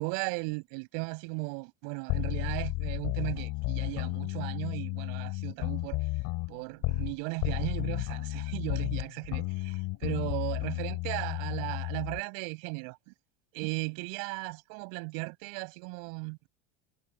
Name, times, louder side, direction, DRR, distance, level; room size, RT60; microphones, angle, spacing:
voice 1, 0.0-6.0 6.5-13.1 13.5-16.5, right 35 dB, 65° right, 8.0 m, -36 dB
sound 1, 2.1-7.2 7.4-12.2, left 23 dB, 60° left, 5.9 m, -33 dB
supercardioid pair, 140°, 38 cm